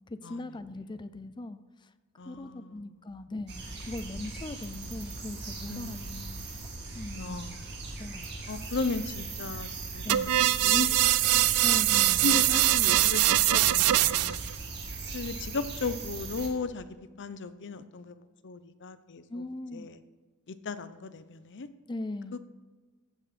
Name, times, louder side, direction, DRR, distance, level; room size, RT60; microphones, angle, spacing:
voice 1, 0.1-1.6 2.3-6.0 6.9-7.4 8.0-8.5 10.0-10.3 11.6-12.4 19.3-19.9 21.9-22.4, left 2 dB, 20° left, 13 dB, 0.5 m, -39 dB
voice 2, 2.2-2.9 5.7-6.6 7.2-7.7 8.5-10.0 10.4-11.6 12.2-13.2 13.5-14.5 15.1-16.9 17.2-19.4 19.7-20.0 20.5-21.7, left 4 dB, 55° left, 12 dB, 0.7 m, -36 dB
sound 1, 3.5-16.5, right 3 dB, 50° right, 2.3 m, -40 dB
sound 2, 10.1-14.5, right 15 dB, 85° right, 0.4 m, -23 dB
15.0 x 8.4 x 4.3 m, 1.3 s
head